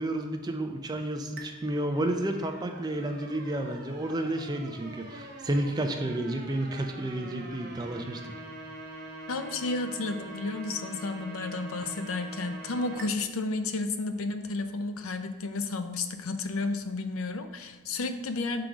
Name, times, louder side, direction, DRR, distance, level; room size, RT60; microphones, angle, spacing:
voice 1, 0.0-8.2, right 1 dB, 20° right, 5 dB, 0.4 m, -31 dB
sound 1, 1.4-13.1, right 2 dB, 45° right, 0.9 m, -44 dB
voice 2, 9.3-18.6, left 3 dB, 75° left, 8 dB, 0.5 m, -32 dB
5.9 x 3.8 x 4.9 m, 1.3 s
head